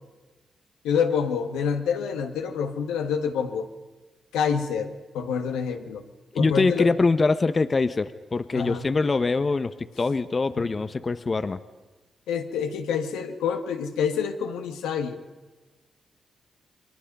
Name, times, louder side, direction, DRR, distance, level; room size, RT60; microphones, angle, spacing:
voice 1, 0.8-3.7 4.3-6.0 6.3-6.9 8.5-8.8 12.3-15.2, left 7 dB, 90° left, 5 dB, 1.5 m, -27 dB
voice 2, 6.3-11.6, left 3 dB, 40° left, 11 dB, 1.0 m, -23 dB
29.5 x 22.5 x 5.5 m, 1.2 s
supercardioid pair, 45°, 0 cm